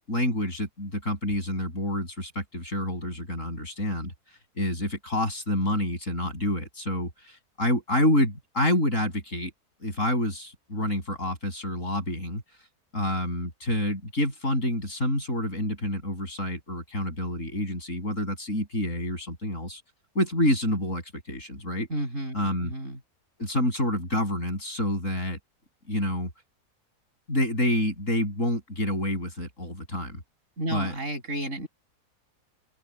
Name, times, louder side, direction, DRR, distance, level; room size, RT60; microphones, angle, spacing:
voice 1, 0.1-4.1 4.6-9.5 9.8-12.4 12.9-19.8 20.1-21.9 22.3-22.7 23.4-25.4 25.9-26.3 27.3-30.2 30.7-30.9, left 1 dB, 50° left, 8.3 m, -28 dB
voice 2, 21.9-23.0 30.6-31.7, right 1 dB, 50° right, 7.6 m, -32 dB
open air
omnidirectional pair, 1.7 m